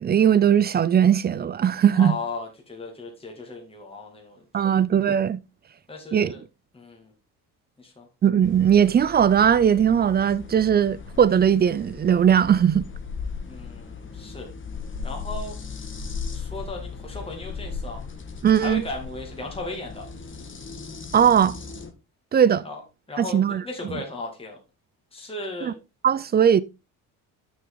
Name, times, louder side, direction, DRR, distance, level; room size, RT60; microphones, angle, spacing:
voice 1, 0.0-2.2 4.5-5.4 6.1-6.3 8.2-12.9 18.4-18.8 21.1-21.6 22.3-22.6 23.2-23.6 25.6-25.7 26.0-26.6, right 8 dB, 30° right, 0.4 m, -19 dB
voice 2, 1.9-4.8 5.9-6.4 6.7-7.1 7.8-8.1 13.4-14.5 15.0-15.6 16.3-18.0 18.6-20.1 22.6-22.8 23.1-24.6 25.1-25.8, left 3 dB, 15° left, 2.5 m, -36 dB
sound 1, 8.4-21.9, left 5 dB, 30° left, 1.6 m, -37 dB
8.0 x 6.2 x 3.8 m
cardioid pair, 115°, 37 cm